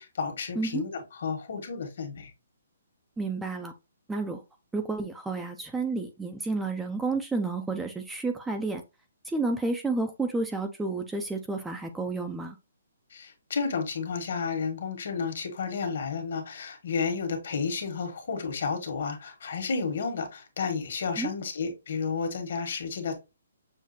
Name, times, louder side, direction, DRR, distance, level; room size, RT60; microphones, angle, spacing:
voice 1, 0.0-2.3 13.1-23.2, left 5 dB, 60° left, 1.4 m, -32 dB
voice 2, 3.2-3.7 4.1-4.4 4.7-8.8 9.2-12.6 21.2-21.3, right 3 dB, 5° right, 0.3 m, -30 dB
6.4 x 2.4 x 2.7 m
hypercardioid pair, 170°, 0 cm